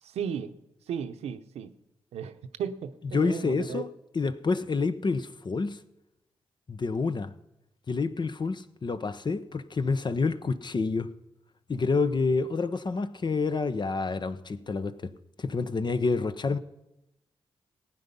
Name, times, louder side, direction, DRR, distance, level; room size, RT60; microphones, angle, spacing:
voice 1, 0.0-0.5 0.9-1.7 2.1-3.8, right 8 dB, 80° right, 0.8 m, -35 dB
voice 2, 3.1-3.9 4.1-5.8 6.7-7.3 7.9-11.1 11.7-15.1 15.4-16.6, left 4 dB, 45° left, 0.8 m, -28 dB
15.5 x 9.3 x 5.4 m
supercardioid pair, 45°, 11 cm